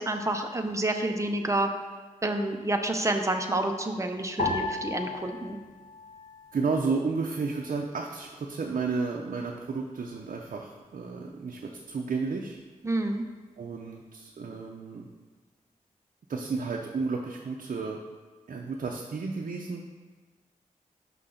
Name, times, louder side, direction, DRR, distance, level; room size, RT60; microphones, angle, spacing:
voice 1, 0.0-1.7 2.2-5.6 12.8-13.2, right 1 dB, 20° right, 4 dB, 0.7 m, -28 dB
sound 1, 4.4-6.9 7.2-8.1 8.7-9.1, left 3 dB, 75° left, 1.1 m, -35 dB
voice 2, 6.5-12.6 13.6-15.1 16.3-18.0 18.5-19.8, right 4 dB, 65° right, 0 dB, 0.6 m, -32 dB
5.8 x 5.6 x 3.8 m, 1.4 s
wide cardioid pair, 70°, 14 cm